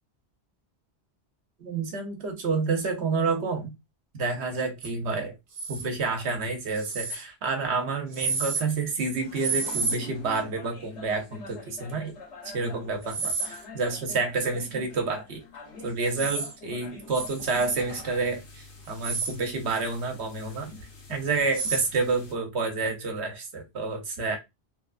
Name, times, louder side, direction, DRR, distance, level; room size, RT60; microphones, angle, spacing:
voice 1, 1.6-3.7 4.1-5.4 5.7-12.1 12.4-15.4 15.8-20.7 21.1-24.4, right 4 dB, 75° right, 1.1 m, -29 dB
sound 1, 4.8-4.9 5.5-5.9 6.7-7.2 8.1-8.6 9.4-10.0 13.0-13.6 16.0-16.5 17.1-17.7 18.9-19.4 21.5-21.9, right 4 dB, 55° right, 0.8 m, -30 dB
sound 2, 8.7-8.8 9.0-22.3, left 3 dB, 90° left, 1.2 m, -46 dB
3.2 x 2.3 x 2.4 m
omnidirectional pair, 1.1 m